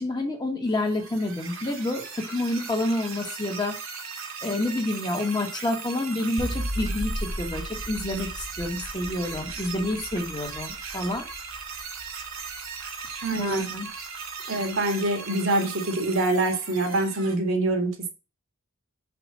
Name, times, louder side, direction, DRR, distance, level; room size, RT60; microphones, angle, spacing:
voice 1, 0.0-3.7 4.4-11.2 13.3-13.9, left 1 dB, 20° left, 2 dB, 1.6 m, -28 dB
sound 1, 0.7-17.3, right 5 dB, 90° right, 2.0 m, -38 dB
sound 2, 6.4-13.6, equal, 15° right, 0.9 m, -36 dB
voice 2, 13.2-13.6 14.5-18.1, right 2 dB, 70° right, 3 dB, 2.1 m, -25 dB
6.0 x 4.9 x 6.0 m, 0.31 s
head